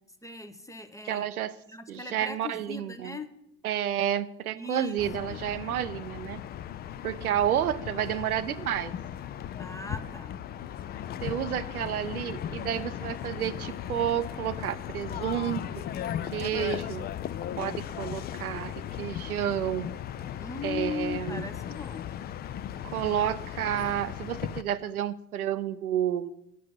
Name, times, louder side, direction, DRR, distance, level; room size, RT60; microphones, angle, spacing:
voice 1, 0.2-1.3 1.7-3.3 4.5-5.0 5.3-5.4 9.5-10.4 20.3-22.1, left 4 dB, 5° left, 8 dB, 0.7 m, -38 dB
voice 2, 1.1-1.5 1.9-3.2 3.6-6.4 7.0-8.9 11.2-15.9 16.3-17.1 17.6-19.9 20.6-21.4 22.8-26.3, right 10 dB, 85° right, 15 dB, 0.5 m, -30 dB
sound 1, 5.0-24.6, left 10 dB, 25° left, 0.3 m, -37 dB
8.2 x 6.1 x 8.0 m, 0.84 s
figure-of-eight pair, 60°, 43 cm